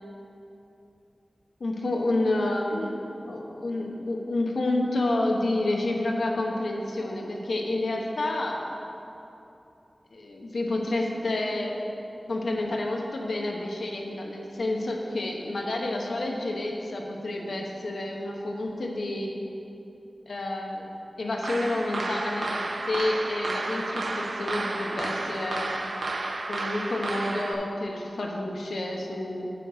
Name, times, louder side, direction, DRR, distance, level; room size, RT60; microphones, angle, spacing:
voice 1, 1.6-8.6 10.1-11.8 12.3-19.3 20.3-20.9 21.2-25.7 26.5-29.5, left 2 dB, 90° left, 0 dB, 1.0 m, -29 dB
sound 1, 21.4-27.5, right 2 dB, 75° right, 0.6 m, -32 dB
9.0 x 5.6 x 4.9 m, 2.9 s
wide cardioid pair, 70°, 0 cm